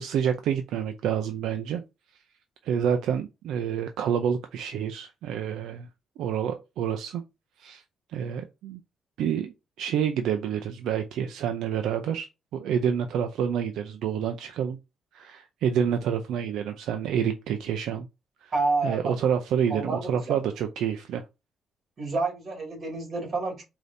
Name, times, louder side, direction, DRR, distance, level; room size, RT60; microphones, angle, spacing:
voice 1, 0.0-1.8 2.6-5.9 6.2-7.2 7.6-7.8 8.1-8.8 9.2-9.5 9.8-14.8 15.1-18.1 18.4-18.5 18.8-21.2, right 8 dB, 80° right, 0.5 m, -28 dB
voice 2, 18.5-19.2 19.7-20.4 22.0-23.6, right 3 dB, 50° right, 2.2 m, -29 dB
4.9 x 2.7 x 2.6 m
cardioid pair, 90°, 0 cm